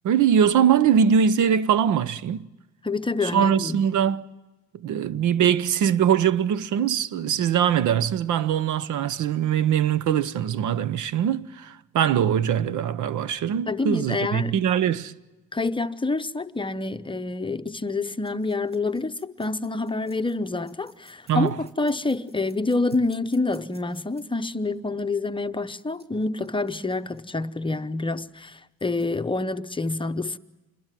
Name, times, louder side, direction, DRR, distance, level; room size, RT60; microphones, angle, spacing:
voice 1, 0.0-2.5 3.2-4.3 4.8-15.1 21.3-21.6, right 8 dB, 75° right, 0.9 m, -22 dB
voice 2, 2.8-3.8 13.7-14.6 15.5-30.4, left 3 dB, 15° left, 0.8 m, -27 dB
sound 1, 18.2-24.2 25.8-27.2 28.5-28.6 28.8-29.0, equal, 20° right, 6.7 m, -58 dB
27.0 x 21.5 x 7.5 m
cardioid pair, 90°, 30 cm